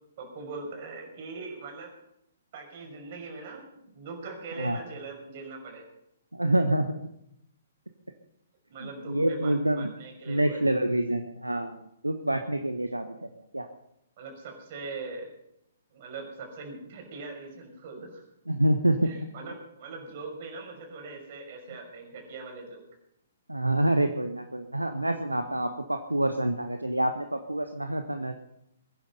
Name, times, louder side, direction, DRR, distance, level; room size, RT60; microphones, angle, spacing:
voice 1, 0.2-1.9 2.5-5.9 8.7-10.7 14.2-15.3 15.9-18.2 19.0-22.8, right 3 dB, 45° right, 2 dB, 6.0 m, -41 dB
voice 2, 6.3-7.0 8.8-9.9 10.3-11.8 12.0-13.1 13.5-13.7 18.5-19.1 23.5-28.4, right 1 dB, 85° right, 7 dB, 1.2 m, -27 dB
22.0 x 10.5 x 5.5 m, 0.78 s
figure-of-eight pair, 125°, 0 cm